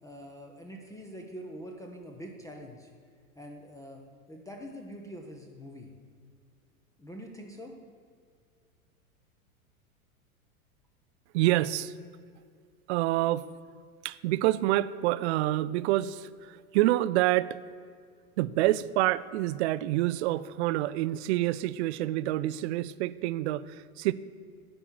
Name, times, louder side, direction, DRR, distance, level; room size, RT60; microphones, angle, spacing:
voice 1, 0.0-2.9 3.4-4.0 4.3-5.9 7.0-7.8, equal, 5° left, 1 dB, 0.8 m, -44 dB
voice 2, 11.3-11.9 12.9-13.5 14.0-17.6 18.4-24.1, right 16 dB, 50° right, 17 dB, 0.5 m, -27 dB
10.5 x 4.5 x 8.0 m, 2.2 s
hypercardioid pair, 115°, 43 cm